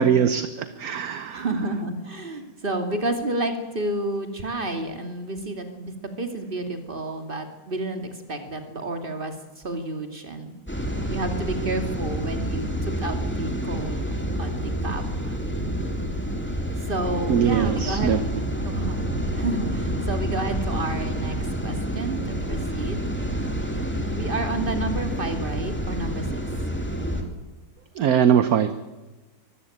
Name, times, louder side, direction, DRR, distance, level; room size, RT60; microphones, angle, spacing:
voice 1, 0.0-1.4 17.3-18.2 28.0-28.7, right 8 dB, 65° right, 12 dB, 1.3 m, -21 dB
voice 2, 1.3-10.5 11.1-15.4 16.8-18.1 18.6-19.0 19.3-23.1 24.1-26.4, right 2 dB, 30° right, 6 dB, 2.5 m, -30 dB
sound 1, 10.7-27.2, right 1 dB, 5° left, 2.5 m, -28 dB
24.0 x 14.5 x 8.8 m, 1.2 s
omnidirectional pair, 1.8 m